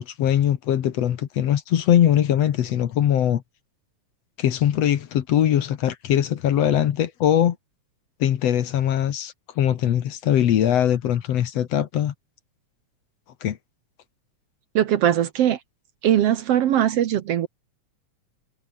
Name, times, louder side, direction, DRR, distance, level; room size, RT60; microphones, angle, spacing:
voice 1, 0.0-3.4 4.4-7.6 8.2-12.1 13.4-13.6, left 10 dB, 60° left, 2.2 m, -21 dB
voice 2, 14.8-15.6 16.0-17.5, right 11 dB, 65° right, 1.9 m, -20 dB
omnidirectional pair, 3.4 m